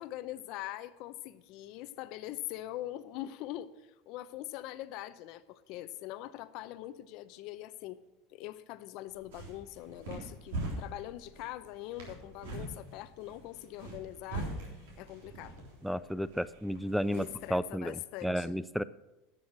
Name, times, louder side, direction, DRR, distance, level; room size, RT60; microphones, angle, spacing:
voice 1, 0.0-3.7 4.1-8.0 8.3-14.5 15.0-15.6 17.1-18.6, left 14 dB, 60° left, 13 dB, 0.7 m, -42 dB
sound 1, 9.1-17.6, right 2 dB, 85° right, 3.4 m, -43 dB
voice 2, 15.8-18.8, equal, ahead, 17 dB, 0.3 m, -33 dB
11.5 x 6.4 x 6.4 m, 1.0 s
supercardioid pair, 125°, 0 cm